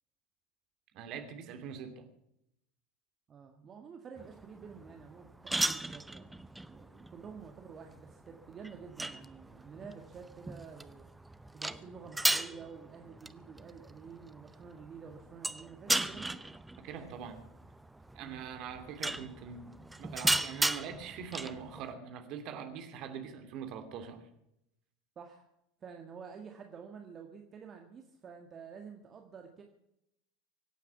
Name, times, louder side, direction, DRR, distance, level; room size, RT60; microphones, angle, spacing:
voice 1, 0.9-2.0 16.8-17.4 18.1-24.3, right 7 dB, 45° right, 7 dB, 2.7 m, -43 dB
voice 2, 3.3-11.1 11.5-16.4 18.2-18.4 25.2-25.5 25.8-29.6, right 6 dB, 30° right, 4 dB, 1.8 m, -49 dB
sound 1, 4.2-21.9, right 2 dB, 5° right, 0.7 m, -37 dB
24.5 x 9.3 x 5.9 m, 0.79 s
figure-of-eight pair, 80°, 0 cm